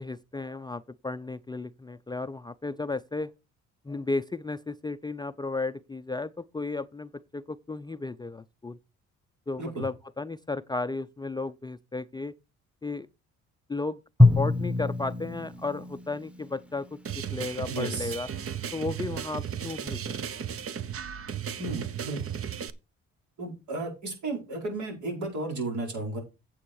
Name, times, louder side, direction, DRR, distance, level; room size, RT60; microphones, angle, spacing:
voice 1, 0.0-3.3 3.8-8.8 9.5-12.3 12.8-13.1 13.7-18.3 18.7-20.2, left 3 dB, 15° left, 0.4 m, -34 dB
Drum, 14.2-17.1, left 2 dB, 5° right, 1.1 m, -24 dB
sound 1, 17.0-22.7, right 8 dB, 50° right, 0.9 m, -35 dB
voice 2, 17.7-18.1 21.6-22.2 23.4-26.2, right 2 dB, 70° right, 4.9 m, -33 dB
8.6 x 7.7 x 4.6 m
cardioid pair, 90°, 30 cm